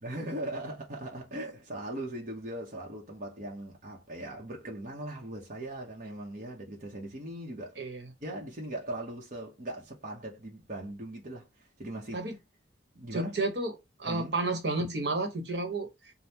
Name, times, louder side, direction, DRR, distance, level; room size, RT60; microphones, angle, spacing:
voice 1, 0.0-7.7 8.2-12.2 12.9-13.4 14.0-14.3, right 1 dB, 50° right, 1.0 m, -39 dB
voice 2, 7.8-8.1 12.1-12.3 13.1-13.7 14.0-16.1, right 2 dB, 70° right, 1.2 m, -31 dB
5.3 x 2.2 x 2.9 m
head